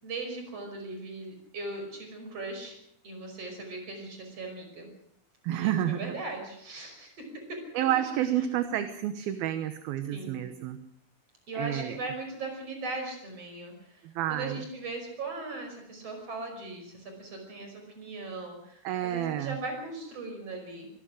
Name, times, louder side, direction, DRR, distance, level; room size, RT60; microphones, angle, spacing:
voice 1, 0.0-2.8 3.0-4.9 5.5-7.6 10.1-10.4 11.5-20.9, right 2 dB, 35° right, 4 dB, 6.3 m, -39 dB
voice 2, 5.4-6.1 7.7-10.8 11.6-12.0 14.0-14.6 18.8-19.6, right 11 dB, 70° right, 9 dB, 2.7 m, -30 dB
24.5 x 19.5 x 6.4 m, 0.70 s
omnidirectional pair, 4.8 m